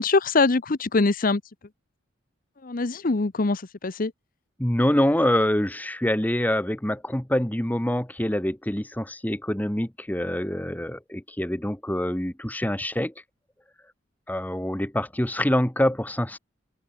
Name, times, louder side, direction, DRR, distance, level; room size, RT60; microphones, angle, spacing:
voice 1, 0.0-1.4 2.6-4.1, left 3 dB, 45° left, 0.8 m, -23 dB
voice 2, 4.6-13.1 14.3-16.4, left 1 dB, 10° left, 1.1 m, -25 dB
open air
head